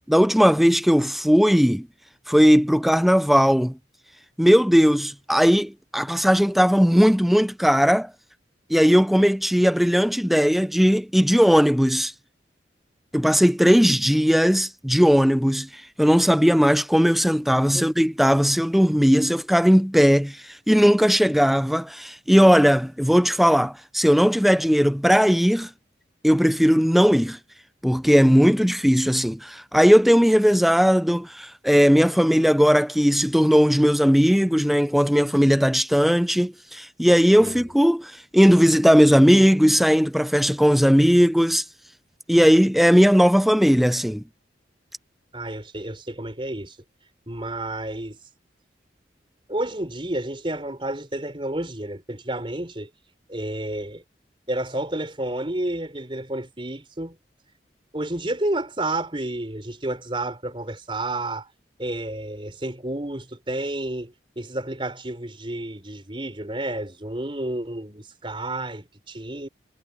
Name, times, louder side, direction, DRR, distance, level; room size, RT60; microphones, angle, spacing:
voice 1, 0.1-1.9 2.3-3.7 4.4-8.1 8.7-12.1 13.1-25.7 26.2-27.4 27.8-41.6 42.3-44.2, equal, ahead, 0.4 m, -18 dB
voice 2, 45.3-46.8 47.3-48.2 49.5-52.9 53.3-54.0 54.5-57.2 57.9-61.5 61.8-69.5, right 1 dB, 30° right, 4.5 m, -30 dB
head